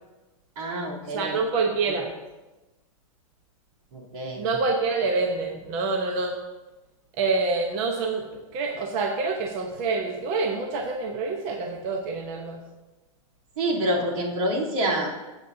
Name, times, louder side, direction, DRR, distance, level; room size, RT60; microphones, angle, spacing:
voice 1, 0.6-1.4 3.9-4.5 13.6-15.1, right 1 dB, 85° right, -4 dB, 3.3 m, -27 dB
voice 2, 1.1-2.1 4.4-6.3 7.2-12.6, right 3 dB, 30° right, 3 dB, 1.0 m, -27 dB
19.5 x 8.1 x 2.8 m, 1.1 s
supercardioid pair, 170°, 18 cm